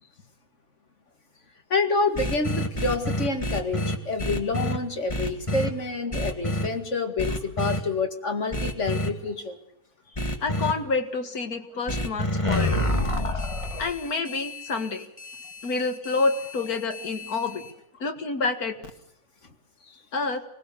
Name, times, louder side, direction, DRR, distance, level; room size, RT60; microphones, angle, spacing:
voice 1, 1.7-9.6, left 3 dB, 55° left, 5 dB, 2.5 m, -28 dB
sound 1, 2.2-4.8 5.1-5.7 6.1-6.7 7.2-7.8 8.5-9.1 10.2-10.7 11.9-17.7, left 1 dB, 20° left, 2.0 m, -29 dB
voice 2, 10.4-12.8 13.7-15.0 15.6-17.6 18.0-18.8 19.9-20.4, left 3 dB, 90° left, 7 dB, 2.4 m, -28 dB
24.5 x 19.5 x 6.9 m, 0.75 s
omnidirectional pair, 1.5 m